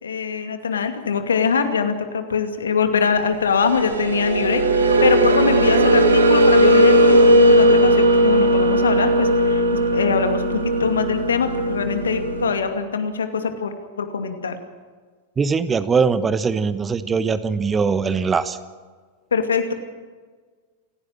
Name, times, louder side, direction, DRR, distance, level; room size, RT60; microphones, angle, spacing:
voice 1, 0.0-9.6 9.9-14.6 19.3-19.7, left 5 dB, 70° left, 7 dB, 2.4 m, -23 dB
sound 1, 3.5-12.5, right 1 dB, 75° right, 3.0 m, -17 dB
voice 2, 15.4-18.6, right 5 dB, 20° right, 13 dB, 1.2 m, -21 dB
28.5 x 16.0 x 7.6 m, 1.5 s
figure-of-eight pair, 90°, 0 cm